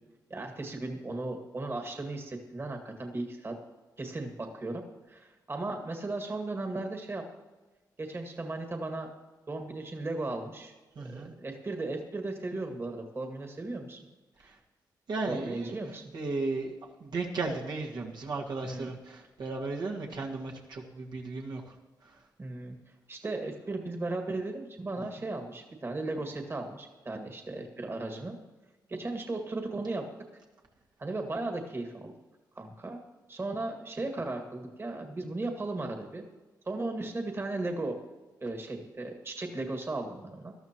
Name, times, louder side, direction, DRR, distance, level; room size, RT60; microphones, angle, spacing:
voice 1, 0.3-3.6 4.0-7.2 8.0-9.1 9.5-10.7 11.0-14.0 14.4-14.5 15.3-16.1 18.6-18.9 22.4-22.7 23.1-28.4 28.9-30.1 31.0-32.1 32.6-33.0 33.3-36.2 36.7-38.0 38.4-40.5, right 2 dB, 35° right, 3 dB, 1.9 m, -36 dB
voice 2, 11.0-11.3 14.4-14.6 15.1-15.8 16.1-16.8 17.0-21.8 22.0-22.2, right 3 dB, 70° right, -1 dB, 1.9 m, -35 dB
19.0 x 13.0 x 3.0 m, 1.2 s
cardioid pair, 90°, 7 cm